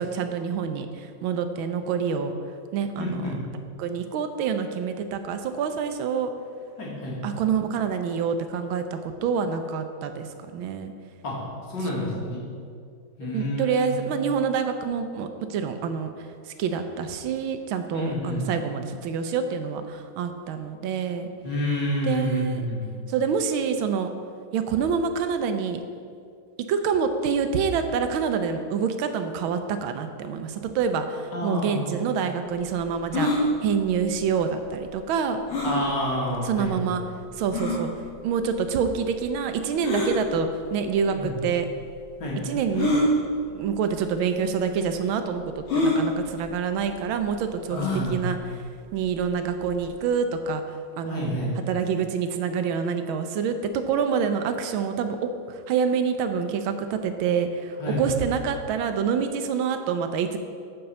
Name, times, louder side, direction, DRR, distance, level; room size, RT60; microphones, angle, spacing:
voice 1, 0.0-2.3 2.7-3.4 3.8-6.3 7.2-10.3 10.5-10.9 11.8-11.9 12.2-12.3 13.2-16.1 16.5-21.3 22.0-22.6 23.1-24.1 24.5-25.8 26.7-35.4 36.4-37.0 37.4-37.9 38.2-41.7 42.4-42.9 43.5-48.6 48.9-55.2 55.5-60.4, right 6 dB, 85° right, 8 dB, 1.5 m, -27 dB
voice 2, 3.0-3.4 6.8-7.2 11.2-11.4 11.7-12.4 13.2-14.1 17.9-18.4 21.4-22.8 31.3-31.9 35.6-36.9 41.1-41.3 42.2-42.4 47.7-48.3 51.0-51.5 57.8-58.0, left 1 dB, 60° left, -5 dB, 2.6 m, -29 dB
sound 1, 33.1-33.4 35.5-35.8 36.6-36.7 37.5-37.8 39.8-40.1 41.2-41.3 42.7-43.1 44.0-44.1 44.4-44.5 45.7-46.0 47.7-48.1, left 2 dB, 85° left, 2.5 m, -24 dB
7.8 x 5.3 x 6.8 m, 2.3 s
omnidirectional pair, 2.2 m